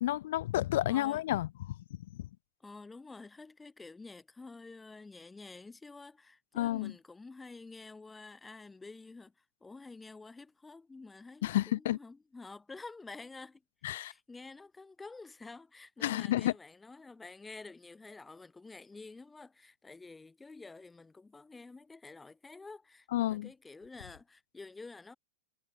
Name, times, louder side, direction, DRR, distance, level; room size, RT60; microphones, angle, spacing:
voice 1, 0.0-1.8 2.1-2.3 6.6-6.9 11.4-12.0 13.8-14.1 16.0-16.5 23.1-23.5, left 14 dB, 70° left, 0.4 m, -31 dB
voice 2, 0.9-1.2 2.6-25.2, left 3 dB, 10° left, 1.8 m, -50 dB
hypercardioid pair, 125°, 0 cm